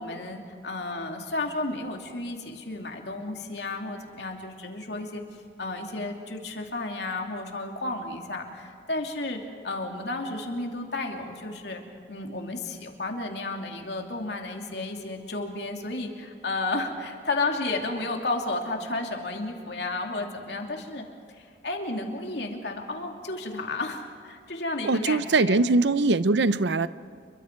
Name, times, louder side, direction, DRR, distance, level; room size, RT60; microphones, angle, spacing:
voice 1, 0.0-5.2 5.6-11.8 12.1-21.1 21.4-25.6, left 2 dB, 70° left, 2 dB, 2.6 m, -32 dB
voice 2, 24.8-26.9, right 3 dB, 75° right, 14 dB, 0.7 m, -22 dB
29.0 x 23.0 x 4.6 m, 2.3 s
head